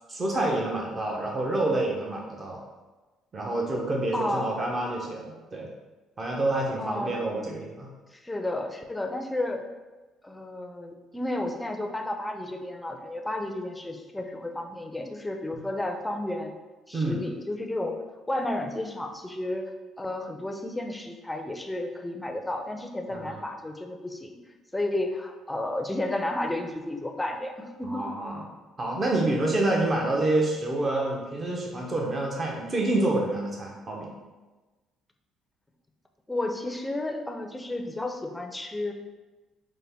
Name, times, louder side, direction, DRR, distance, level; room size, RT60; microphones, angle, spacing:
voice 1, 0.1-2.6 3.3-5.7 6.2-7.9 15.5-15.6 16.9-17.2 23.1-23.4 27.8-28.5 28.8-34.1, right 2 dB, 35° right, -1 dB, 0.7 m, -28 dB
voice 2, 4.1-4.5 6.8-7.2 8.1-9.6 10.2-16.6 16.9-18.0 18.3-24.4 24.7-28.0 36.3-38.9, left 1 dB, 10° left, 4 dB, 0.5 m, -32 dB
5.2 x 2.1 x 3.4 m, 1.2 s
supercardioid pair, 75°, 0 cm